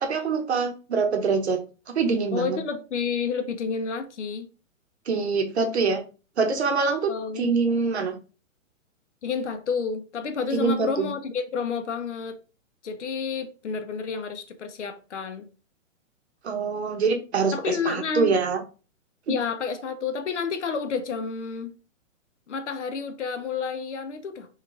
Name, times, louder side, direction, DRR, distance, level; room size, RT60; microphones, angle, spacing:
voice 1, 0.0-1.6 1.9-2.6 5.1-6.0 6.4-7.1 7.4-8.1 10.5-11.1 16.4-18.6, right 4 dB, 55° right, 0.9 m, -24 dB
voice 2, 2.3-4.5 7.1-7.5 9.2-12.4 12.8-15.5 17.5-18.4 19.3-21.7 22.5-24.5, left 5 dB, 60° left, 0.8 m, -30 dB
3.2 x 3.2 x 3.5 m
hypercardioid pair, 180°, 40 cm